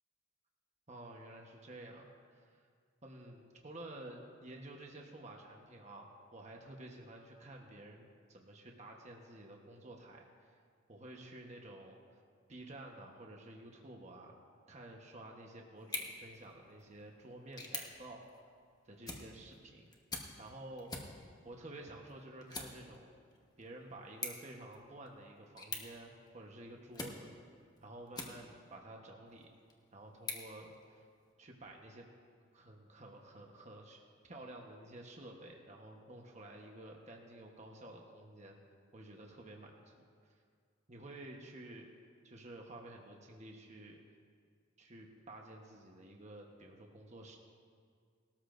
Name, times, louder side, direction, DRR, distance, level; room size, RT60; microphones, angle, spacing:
voice 1, 0.9-2.1 2.3-2.6 3.0-10.5 10.9-12.2 12.5-14.4 14.7-18.2 18.8-19.9 20.4-23.1 23.6-27.3 27.8-29.5 29.9-31.1 31.4-32.1 32.5-34.0 34.3-38.6 38.9-40.1 40.9-41.9 42.2-44.0 44.8-47.4, right 1 dB, 35° right, 0 dB, 1.2 m, -51 dB
sound 1, 15.8-28.8 29.3-31.3, left 3 dB, 20° left, 1.2 m, -48 dB
19.5 x 13.0 x 2.6 m, 2.1 s
head